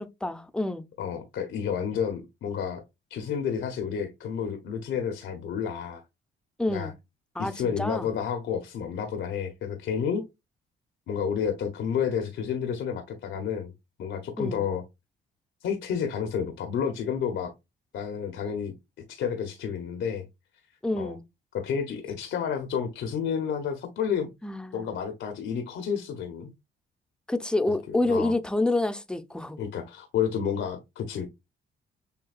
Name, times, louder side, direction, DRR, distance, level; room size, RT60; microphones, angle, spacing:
voice 1, 0.0-0.8 6.6-6.9 7.4-8.1 14.4-14.6 20.8-21.2 24.4-24.9 27.3-29.6, left 2 dB, 5° left, 0.6 m, -28 dB
voice 2, 1.0-2.8 3.1-6.0 6.7-6.9 7.4-10.3 11.1-13.7 14.0-14.8 15.6-17.5 17.9-18.7 19.1-20.2 21.0-21.1 21.5-24.3 24.7-26.5 27.9-28.3 29.6-31.3, left 7 dB, 75° left, 0.9 m, -30 dB
6.8 x 2.3 x 2.4 m
cardioid pair, 90°, 20 cm